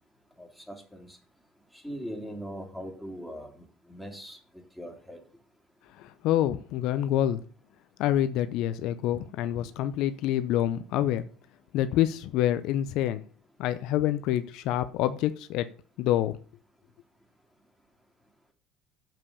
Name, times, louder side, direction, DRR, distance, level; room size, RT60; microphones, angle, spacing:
voice 1, 0.4-1.2 1.8-4.4 4.8-5.2, equal, ahead, 3.0 m, -40 dB
voice 2, 6.0-7.4 8.0-11.3 11.7-13.2 13.6-15.7 16.0-16.4, left 12 dB, 65° left, 0.6 m, -27 dB
7.4 x 5.4 x 6.9 m
hypercardioid pair, 70°, 0 cm